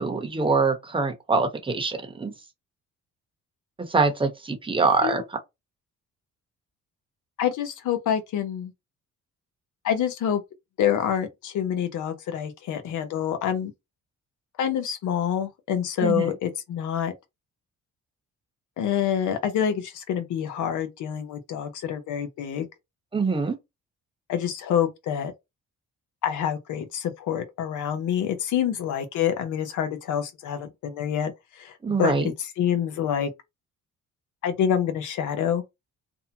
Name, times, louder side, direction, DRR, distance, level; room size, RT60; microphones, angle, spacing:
voice 1, 0.0-2.3 3.9-5.2 16.0-16.3 23.1-23.6 31.8-32.3, right 4 dB, 15° right, 0.9 m, -24 dB
voice 2, 7.4-8.7 9.8-10.4 10.8-13.7 14.6-17.1 18.8-22.7 24.3-25.3 26.2-31.3 31.6-31.7 32.0-33.3 34.4-35.6, left 9 dB, 80° left, 0.8 m, -27 dB
2.7 x 2.1 x 2.8 m
cardioid pair, 90°, 30 cm